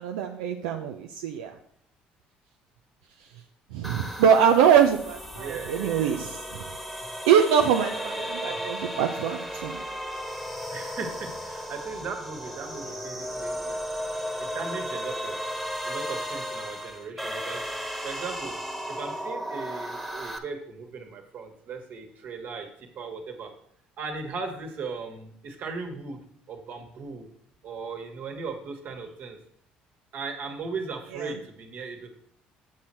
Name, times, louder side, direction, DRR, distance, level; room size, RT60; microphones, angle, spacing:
voice 1, 0.0-1.5 3.7-6.6 7.3-9.8 31.2-31.3, right 8 dB, 90° right, 3 dB, 0.5 m, -23 dB
sound 1, 3.8-20.4, equal, ahead, 1.2 m, -35 dB
voice 2, 5.3-6.1 7.8-8.9 10.7-13.8 14.4-15.4 15.8-17.6 18.0-18.5 18.9-22.7 22.9-23.5 24.0-26.2 26.5-27.3 27.6-29.4 30.1-32.1, right 4 dB, 60° right, 4 dB, 1.6 m, -37 dB
7.3 x 6.3 x 4.3 m, 0.66 s
supercardioid pair, 70°, 4 cm